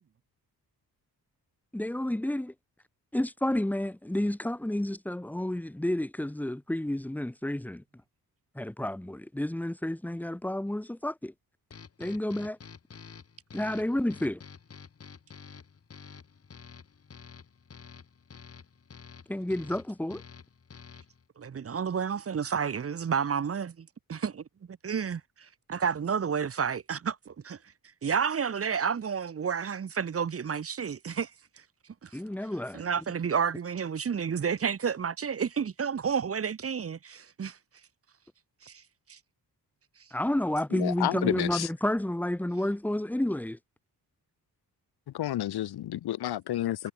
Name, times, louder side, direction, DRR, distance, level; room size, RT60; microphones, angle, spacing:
voice 1, 1.7-2.5 3.1-7.8 8.5-11.3 12.0-12.6 13.5-14.4 19.3-20.2 32.1-32.8 40.1-43.6, left 1 dB, 5° left, 1.2 m, -30 dB
sound 1, 11.7-21.3, left 6 dB, 40° left, 3.3 m, -50 dB
voice 2, 21.4-24.4 24.8-25.2 25.7-27.6 28.0-31.3 32.0-32.1 32.7-37.6 38.6-38.8 39.1-39.2, right 6 dB, 35° right, 1.1 m, -30 dB
voice 3, 40.7-41.7 45.1-46.9, left 13 dB, 90° left, 0.8 m, -30 dB
wide cardioid pair, 170°, 38 cm